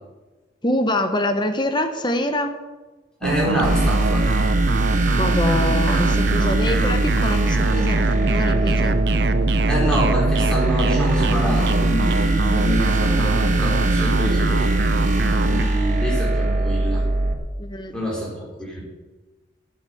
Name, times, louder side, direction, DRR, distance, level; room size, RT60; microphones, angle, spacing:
voice 1, 0.6-2.6 5.1-9.0 17.6-18.0, left 1 dB, 25° left, 7 dB, 1.0 m, -25 dB
voice 2, 3.2-4.3 9.7-15.1 15.5-17.1 17.9-18.8, equal, 5° left, -5 dB, 4.1 m, -26 dB
sound 1, 3.2-15.6, right 3 dB, 60° right, 0.6 m, -24 dB
sound 2, 3.6-17.3, right 2 dB, 40° right, 1.2 m, -21 dB
8.9 x 8.5 x 7.8 m, 1.2 s
head